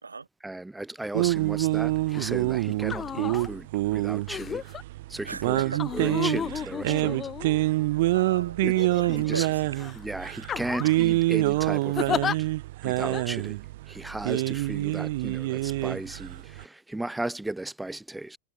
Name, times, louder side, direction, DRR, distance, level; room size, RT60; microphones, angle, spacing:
voice 1, 0.4-4.7 5.1-7.2 8.7-8.8 9.1-9.5 9.9-12.5 12.8-13.6 13.9-18.4, right 2 dB, 5° right, 2.0 m, -36 dB
sound 1, 1.1-16.6, right 18 dB, 50° right, 0.5 m, -26 dB
sound 2, 2.1-2.3 2.8-3.5 4.3-4.8 5.8-7.9 8.6-9.4 9.8-10.0 10.4-11.0 12.0-12.4 13.1-13.2, left 8 dB, 25° left, 5.3 m, -33 dB
voice 2, 5.3-5.8 7.9-9.6, right 4 dB, 75° right, 5.2 m, -37 dB
figure-of-eight pair, 90°, 0 cm